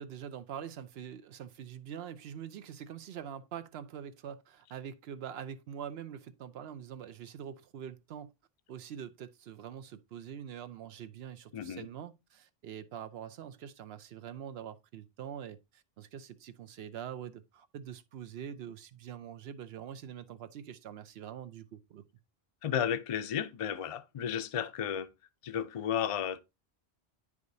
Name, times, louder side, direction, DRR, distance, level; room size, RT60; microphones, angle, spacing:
voice 1, 0.0-8.3 8.7-22.0, right 9 dB, 80° right, 0.9 m, -44 dB
voice 2, 11.5-11.9 22.6-25.1 25.4-26.4, left 9 dB, 45° left, 0.4 m, -33 dB
9.4 x 4.9 x 2.6 m
omnidirectional pair, 1.0 m